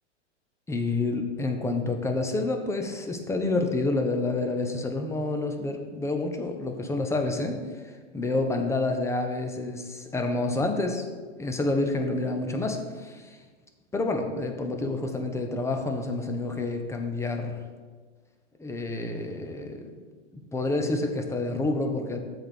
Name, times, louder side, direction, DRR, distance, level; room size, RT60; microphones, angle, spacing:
voice 1, 0.7-11.0 11.4-13.4 13.9-17.6 18.6-19.9 20.3-22.2, left 2 dB, 10° left, 4 dB, 0.9 m, -28 dB
7.7 x 4.4 x 6.3 m, 1.4 s
hypercardioid pair, 120°, 35 cm